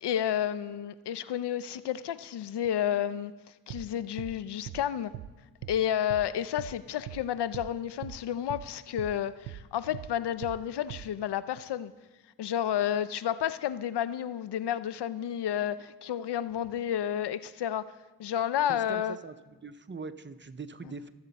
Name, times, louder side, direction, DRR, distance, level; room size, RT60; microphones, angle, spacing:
voice 1, 0.0-3.3 3.7-5.1 5.7-11.9 12.4-17.9 18.2-19.2, left 10 dB, 70° left, 0.6 m, -31 dB
sound 1, 3.7-3.9 4.2-4.3 4.7-4.8 5.1-5.3 5.6-5.8 6.1-6.3 6.6-6.7 7.1-7.2 7.5-7.7 8.0-8.2 8.5-8.7 9.0-9.1 9.5-9.6 9.9-10.1 10.4-10.6 10.9-11.1, right 13 dB, 80° right, 0.6 m, -40 dB
voice 2, 18.7-21.1, right 4 dB, 25° right, 0.8 m, -42 dB
22.5 x 8.0 x 4.1 m
cardioid pair, 70°, 42 cm